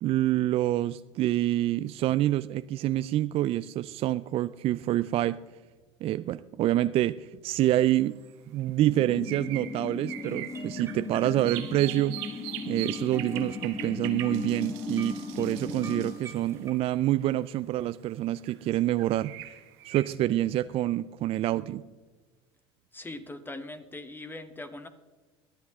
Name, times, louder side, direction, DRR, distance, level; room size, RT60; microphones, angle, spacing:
voice 1, 0.0-5.4 6.0-8.2 8.5-12.2 12.7-19.6 19.9-21.8, right 14 dB, 45° right, 14 dB, 0.4 m, -27 dB
sound 1, 7.8-7.9 8.8-17.2 18.4-20.0, right 14 dB, 70° right, 1.2 m, -41 dB
sound 2, 8.8-16.1, left 4 dB, 30° left, 1.3 m, -37 dB
sound 3, 10.1-16.7, right 3 dB, 20° right, 2.3 m, -49 dB
voice 2, 22.9-24.9, left 2 dB, 15° left, 10 dB, 1.0 m, -41 dB
22.5 x 7.9 x 3.6 m, 1.3 s
hypercardioid pair, 90°, 14 cm